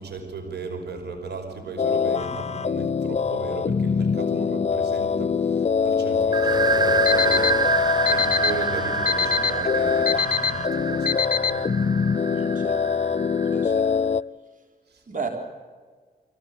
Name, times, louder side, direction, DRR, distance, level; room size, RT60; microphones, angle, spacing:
voice 1, 0.0-12.0 14.9-15.0, right 4 dB, 80° right, 4 dB, 5.3 m, -36 dB
sound 1, 1.8-14.2, left 6 dB, 40° left, 0.6 m, -24 dB
sound 2, 6.3-13.8, right 5 dB, 25° right, 0.7 m, -27 dB
Alarm, 7.1-7.5 8.1-8.5 9.1-9.5 10.1-10.5 11.1-11.5, left 7 dB, 60° left, 0.9 m, -22 dB
voice 2, 12.3-12.8 13.5-13.9 15.1-15.3, right 5 dB, 50° right, 4 dB, 3.9 m, -34 dB
24.0 x 17.0 x 8.4 m, 1.5 s
cardioid pair, 70°, 17 cm